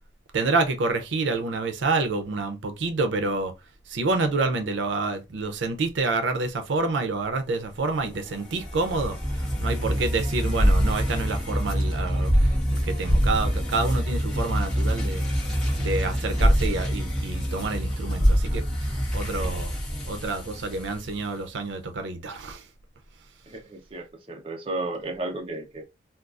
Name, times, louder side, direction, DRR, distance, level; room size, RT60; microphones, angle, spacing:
voice 1, 0.3-3.5 3.9-12.6 12.8-15.3 15.8-19.7 20.0-22.7, right 3 dB, 85° right, 0.5 m, -28 dB
sound 1, 7.8-21.2, equal, 5° left, 0.9 m, -25 dB
voice 2, 23.5-25.8, right 2 dB, 30° right, 0.5 m, -33 dB
3.7 x 2.3 x 2.4 m
head